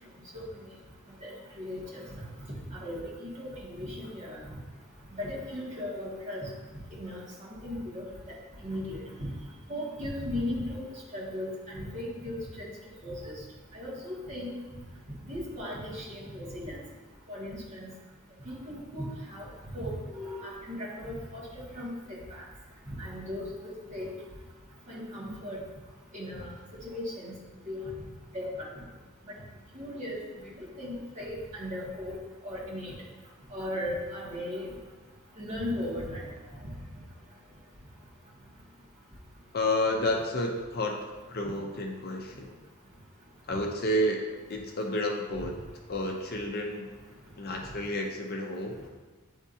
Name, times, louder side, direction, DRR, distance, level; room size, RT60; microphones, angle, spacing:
voice 1, 1.2-1.8 2.8-4.4 5.2-6.5 7.0-8.0 8.6-9.3 9.7-10.8 11.1-12.7 13.0-13.3 13.7-14.6 15.3-16.8 17.3-17.9 18.5-19.1 19.3-19.5 19.7-22.4 23.0-24.1 24.9-25.6 26.1-26.5 26.8-27.3 27.7-27.9 28.3-28.7 29.7-30.2 30.6-32.1 32.4-32.9 33.5-34.7 35.4-36.3, left 1 dB, 35° right, -7 dB, 1.9 m, -37 dB
voice 2, 39.5-41.0 41.3-42.5 43.5-44.2 44.5-45.5 45.9-46.9 47.4-48.7, left 1 dB, 45° left, 1 dB, 0.6 m, -30 dB
9.5 x 3.6 x 2.8 m, 1.3 s
head